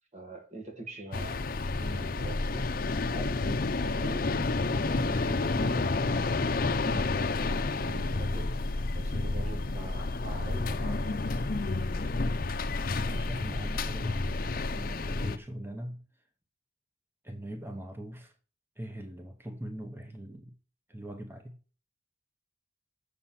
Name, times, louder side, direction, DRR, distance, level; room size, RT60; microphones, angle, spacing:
voice 1, 0.1-4.3 4.7-8.7 9.0-11.4, right 1 dB, 35° right, 1.9 m, -44 dB
sound 1, 1.1-15.4, left 3 dB, 50° left, 0.6 m, -30 dB
voice 2, 13.0-16.0 17.2-18.3 18.8-20.6 20.9-21.6, right 1 dB, 10° right, 0.8 m, -41 dB
7.3 x 6.9 x 5.8 m
head